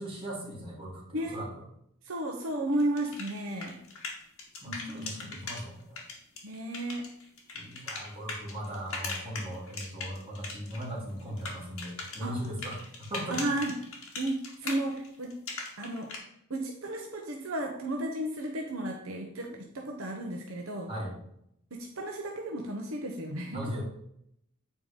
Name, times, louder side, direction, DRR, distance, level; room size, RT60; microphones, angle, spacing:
voice 1, 0.0-1.6 4.6-6.0 7.5-13.4 20.9-21.2 23.5-23.8, equal, 25° right, -4 dB, 2.9 m, -38 dB
voice 2, 2.0-3.8 4.7-5.4 6.4-7.1 12.2-12.4 13.3-13.7 14.2-15.3 15.8-16.1 16.5-20.9 21.7-23.6, right 1 dB, 65° right, 1 dB, 1.1 m, -33 dB
sound 1, 2.7-5.6 6.0-10.8 11.1-16.2, left 4 dB, 65° left, 2.2 m, -39 dB
8.8 x 4.7 x 5.2 m, 0.73 s
head